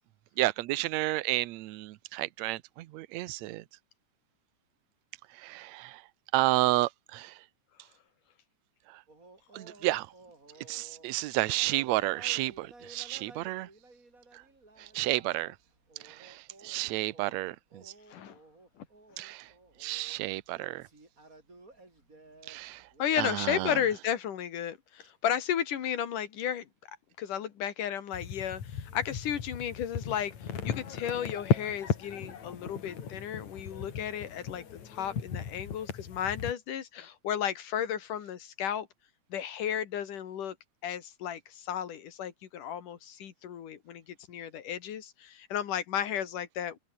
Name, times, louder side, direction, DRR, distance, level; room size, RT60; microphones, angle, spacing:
voice 1, 0.4-3.6 5.3-6.0 6.3-7.4 8.9-9.0 9.5-10.1 10.7-13.7 14.3-14.4 14.8-15.6 16.0-17.9 19.2-19.5 19.8-20.9 22.5-22.9 23.2-23.8, right 18 dB, 75° right, 1.8 m, -31 dB
sound 1, 9.1-23.7, right 2 dB, 25° right, 5.4 m, -56 dB
voice 2, 23.0-26.7 27.2-30.3 30.6-34.6 34.9-38.9 39.3-40.6 40.8-44.0 44.3-46.8, left 9 dB, 75° left, 3.6 m, -33 dB
sound 2, 28.1-36.5, left 7 dB, 60° left, 3.7 m, -36 dB
open air
omnidirectional pair, 3.7 m